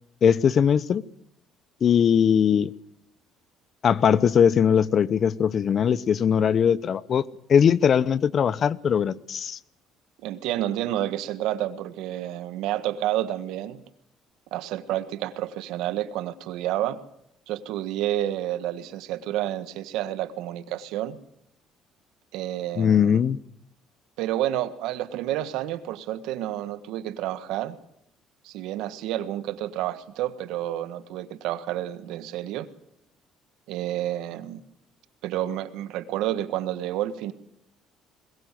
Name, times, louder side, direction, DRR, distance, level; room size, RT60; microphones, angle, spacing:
voice 1, 0.2-1.0 1.8-2.7 3.8-7.2 7.5-9.6 22.8-23.4, left 8 dB, 50° left, 0.9 m, -20 dB
voice 2, 10.2-13.8 14.5-17.0 17.5-21.2 22.3-23.2 24.2-27.8 28.4-32.7 33.7-34.6 35.2-37.3, right 13 dB, 80° right, 1.6 m, -30 dB
21.5 x 21.5 x 7.7 m
supercardioid pair, 85°, 0 cm